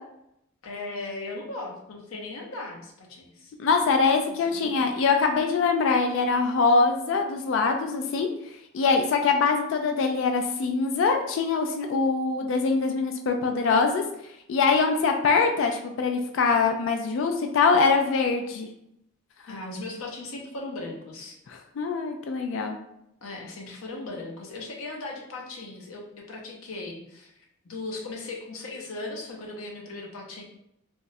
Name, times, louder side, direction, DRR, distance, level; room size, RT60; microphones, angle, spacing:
voice 1, 0.6-3.5 4.5-4.9 19.5-21.4 23.2-30.4, left 2 dB, 75° left, -1 dB, 0.7 m, -38 dB
voice 2, 3.6-8.3 8.7-14.0 14.5-18.7 19.5-19.6 21.5-22.8, left 4 dB, 60° left, 5 dB, 0.3 m, -23 dB
3.4 x 2.0 x 2.6 m, 0.79 s
head